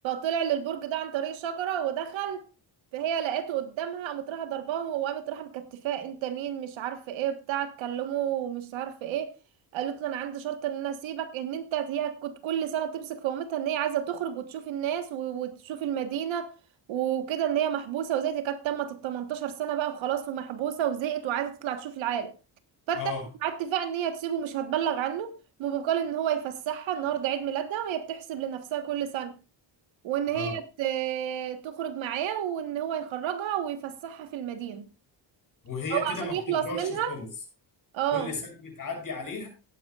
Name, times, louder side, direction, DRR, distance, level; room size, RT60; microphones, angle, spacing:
voice 1, 0.0-2.4 2.9-9.3 9.7-16.5 16.9-22.3 22.9-23.1 23.4-25.3 25.6-29.3 30.0-34.8 35.9-37.1 37.9-38.3, right 10 dB, 90° right, 1.5 m, -30 dB
voice 2, 35.6-37.3 38.1-39.5, left 4 dB, 45° left, 7.0 m, -35 dB
17.5 x 9.6 x 2.4 m
cardioid pair, 120°, 45 cm